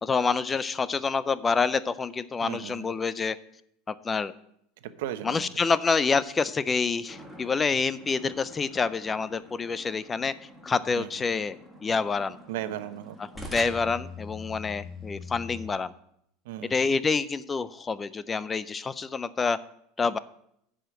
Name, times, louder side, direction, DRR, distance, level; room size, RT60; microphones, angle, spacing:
voice 1, 0.0-3.4 3.9-4.3 5.2-10.3 10.6-12.4 13.4-15.9 16.6-19.6 20.0-20.2, left 4 dB, 15° left, 16 dB, 0.4 m, -27 dB
voice 2, 2.4-2.9 4.8-5.5 10.9-11.1 12.5-13.2 16.4-16.7, right 12 dB, 90° right, 12 dB, 0.7 m, -36 dB
sound 1, 7.1-15.7, left 2 dB, ahead, 1.7 m, -44 dB
10.5 x 5.0 x 7.6 m, 0.74 s
supercardioid pair, 145°, 0 cm